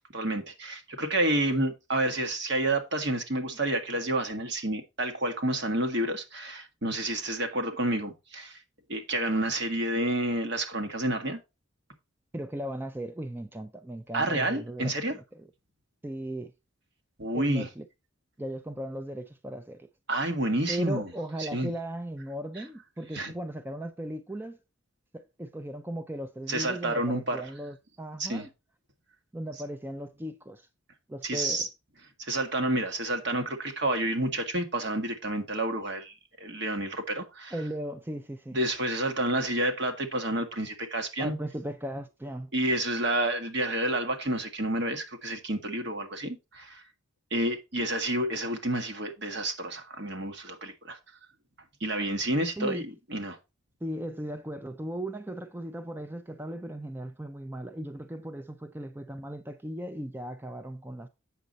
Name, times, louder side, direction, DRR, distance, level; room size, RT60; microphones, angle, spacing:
voice 1, 0.1-8.6 8.9-11.4 14.1-15.1 17.2-17.7 20.1-21.1 21.4-21.7 23.1-23.3 26.5-27.4 28.2-28.5 31.2-31.7 32.2-36.1 36.4-37.5 38.5-41.3 42.5-46.8 47.3-51.0 51.8-52.8 53.1-53.4, right 1 dB, 55° right, 1.5 m, -29 dB
voice 2, 12.3-15.5 16.0-16.5 17.3-17.9 18.4-19.9 20.7-24.6 25.1-28.5 29.3-30.7 31.1-31.7 37.5-38.6 41.2-42.5 52.6-52.8 53.8-61.1, right 1 dB, 10° right, 0.4 m, -37 dB
8.1 x 6.4 x 4.0 m
head